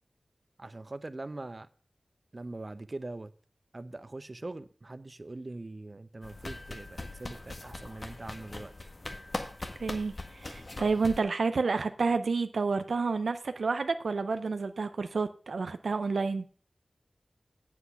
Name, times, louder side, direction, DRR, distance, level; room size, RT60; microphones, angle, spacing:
voice 1, 0.6-1.7 2.3-3.3 3.7-8.7, right 2 dB, 45° right, 0.7 m, -42 dB
sound 1, 6.2-11.2, left 2 dB, 50° left, 1.6 m, -41 dB
voice 2, 9.8-16.5, right 4 dB, 90° right, 0.5 m, -30 dB
8.4 x 7.8 x 5.7 m
cardioid pair, 40°, 0 cm